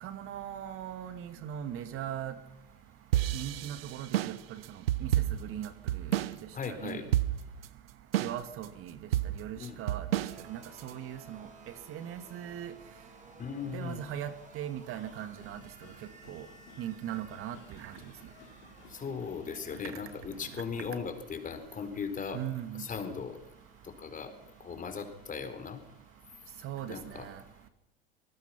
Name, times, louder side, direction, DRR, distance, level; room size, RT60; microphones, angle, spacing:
voice 1, 0.0-2.3 3.3-4.6 5.0-5.1 5.4-5.7 6.0-6.1 6.7-7.0 8.2-9.0 9.4-10.1 10.5-11.5 11.9-12.7 13.7-15.6 16.3-16.5 16.8-17.9 22.3-22.8 26.6-27.4, right 10 dB, 45° right, 10 dB, 1.9 m, -39 dB
sound 1, 3.1-6.4 6.6-6.7 7.1-7.7 8.1-8.7 9.1-10.9, right 13 dB, 75° right, 1.0 m, -30 dB
voice 2, 6.5-7.1 9.6-9.8 13.4-14.0 18.9-22.4 22.8-23.4 23.8-24.3 24.6-25.8 26.9-27.3, left 6 dB, 25° left, 7 dB, 4.2 m, -38 dB
sound 2, 10.2-27.2, right 2 dB, 25° right, 6.1 m, -58 dB
sound 3, 14.9-20.8, left 7 dB, 70° left, 4.3 m, -57 dB
26.5 x 19.5 x 5.9 m, 0.94 s
hypercardioid pair, 85°, 30 cm